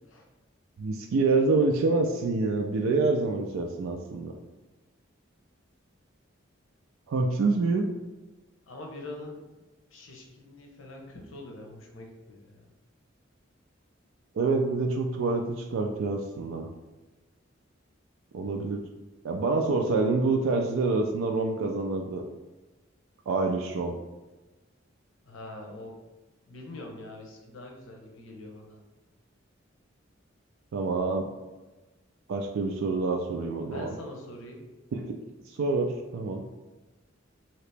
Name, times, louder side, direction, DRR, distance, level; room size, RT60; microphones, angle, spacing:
voice 1, 0.8-4.4 7.1-7.9 14.4-16.7 18.3-18.8 19.2-22.2 23.3-23.9 30.7-31.2 32.3-34.0 35.1-35.2 35.6-35.9 36.1-36.4, right 3 dB, 85° right, 2 dB, 0.3 m, -26 dB
voice 2, 8.7-9.4 9.9-12.7 25.3-25.9 26.5-28.8 33.7-34.7, left 2 dB, 85° left, 1 dB, 0.7 m, -44 dB
2.9 x 2.8 x 3.3 m, 1.1 s
head